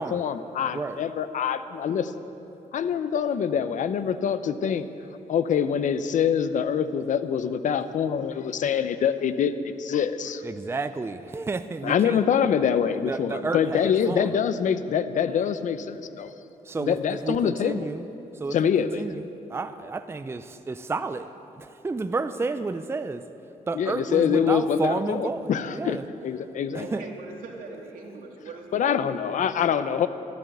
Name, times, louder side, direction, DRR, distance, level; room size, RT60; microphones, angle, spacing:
voice 1, 0.0-2.1 2.7-4.9 5.3-10.4 11.8-16.3 16.9-17.9 18.5-19.0 23.7-26.9 28.7-30.1, left 7 dB, 65° left, 12 dB, 0.7 m, -25 dB
voice 2, 10.4-12.2 12.9-14.4 16.6-18.1 18.3-23.2 23.7-26.0 26.7-27.0, right 3 dB, 20° right, 10 dB, 0.5 m, -31 dB
voice 3, 26.8-29.7, right 3 dB, 80° right, 0 dB, 2.5 m, -42 dB
13.0 x 12.5 x 8.1 m, 2.9 s
cardioid pair, 105°, 14 cm